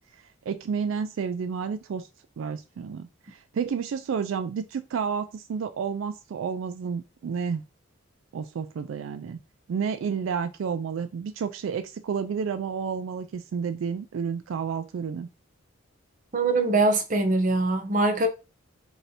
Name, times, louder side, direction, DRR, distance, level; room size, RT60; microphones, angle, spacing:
voice 1, 0.0-2.1 2.4-7.6 8.3-9.4 9.7-15.3, right 6 dB, 75° right, 0.3 m, -31 dB
voice 2, 16.3-18.3, right 2 dB, 40° right, 0.7 m, -22 dB
3.1 x 2.7 x 4.1 m
head